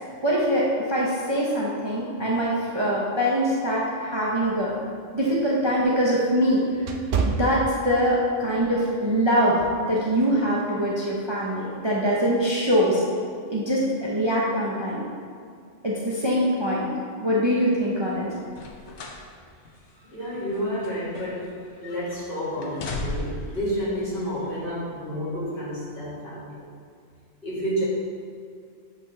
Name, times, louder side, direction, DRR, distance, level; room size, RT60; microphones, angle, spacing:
voice 1, 0.2-4.7 5.1-6.9 7.2-13.0 13.5-15.0 15.8-16.9 17.2-18.3, equal, 25° right, -5 dB, 0.7 m, -23 dB
sound 1, 4.6-8.3 8.7-9.0 9.6-9.9, right 5 dB, 55° right, 0.6 m, -30 dB
sound 2, 18.5-19.3 19.7-19.8 20.5-21.6 21.8-22.2 22.6-23.6 24.4-24.5, left 2 dB, 70° left, 1.1 m, -35 dB
voice 2, 19.9-26.6 27.4-27.8, equal, 45° left, -8 dB, 2.1 m, -30 dB
8.1 x 5.4 x 3.2 m, 2.3 s
omnidirectional pair, 1.3 m